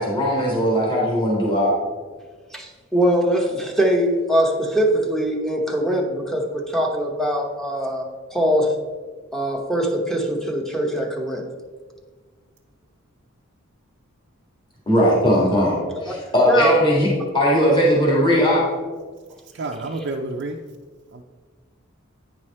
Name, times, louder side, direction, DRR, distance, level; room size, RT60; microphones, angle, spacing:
voice 1, 0.0-1.7 14.9-17.1 17.3-18.6, equal, 25° left, -5 dB, 2.0 m, -18 dB
voice 2, 2.5-8.7 9.3-11.5 15.9-16.2 16.4-16.8, equal, ahead, 2 dB, 0.9 m, -22 dB
voice 3, 19.5-20.6 21.1-21.2, right 2 dB, 55° right, 0 dB, 0.5 m, -29 dB
9.3 x 4.9 x 4.3 m, 1.4 s
head